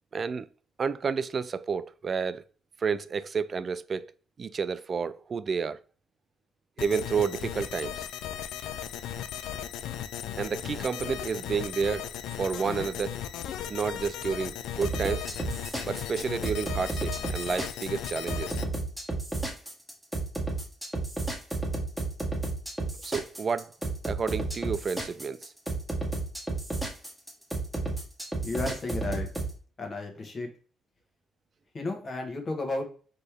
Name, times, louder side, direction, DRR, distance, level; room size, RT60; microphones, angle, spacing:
voice 1, 0.1-0.4 0.8-2.4 2.8-4.1 4.4-5.8 6.8-8.0 10.4-12.1 12.4-13.2 13.7-15.3 15.8-18.6 23.0-23.7 24.1-25.5, right 5 dB, 45° right, 0.3 m, -30 dB
sound 1, 6.8-18.6, left 10 dB, 80° left, 0.3 m, -37 dB
sound 2, 14.8-29.5, right 2 dB, ahead, 1.5 m, -32 dB
voice 2, 28.4-29.3 29.8-30.5 31.7-32.8, left 2 dB, 40° left, 1.3 m, -33 dB
4.3 x 3.2 x 3.4 m
cardioid pair, 75°, 0 cm